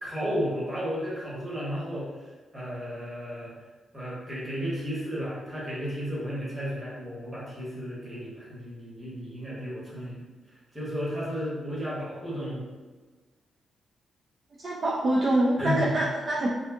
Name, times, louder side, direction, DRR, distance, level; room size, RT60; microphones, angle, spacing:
voice 1, 0.0-2.1 2.5-3.5 3.9-10.2 10.7-12.6 15.6-16.0, equal, 15° right, -7 dB, 0.9 m, -33 dB
voice 2, 14.6-16.5, right 1 dB, 40° right, -4 dB, 0.3 m, -25 dB
2.6 x 2.6 x 2.2 m, 1.3 s
wide cardioid pair, 150°, 0 cm